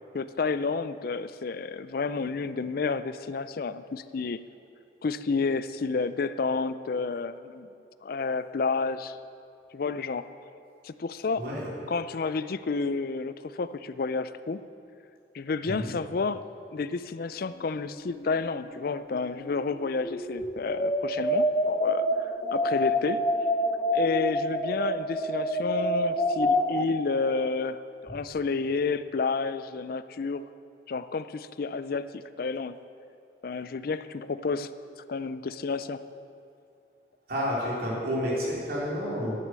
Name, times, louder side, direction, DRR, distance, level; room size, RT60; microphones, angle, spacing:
voice 1, 0.1-4.4 5.0-7.7 8.0-9.2 9.7-10.3 10.8-11.4 11.9-14.6 15.3-16.4 16.7-23.2 23.9-30.4 30.9-32.8 33.4-34.7 35.1-36.0, left 4 dB, 50° left, 13 dB, 0.4 m, -30 dB
voice 2, 11.4-11.7 15.7-15.9 37.3-39.3, equal, 50° right, -6 dB, 3.8 m, -30 dB
sound 1, 17.7-18.7 19.0-26.9, left 1 dB, 20° left, 0.8 m, -27 dB
10.5 x 9.5 x 8.1 m, 2.6 s
head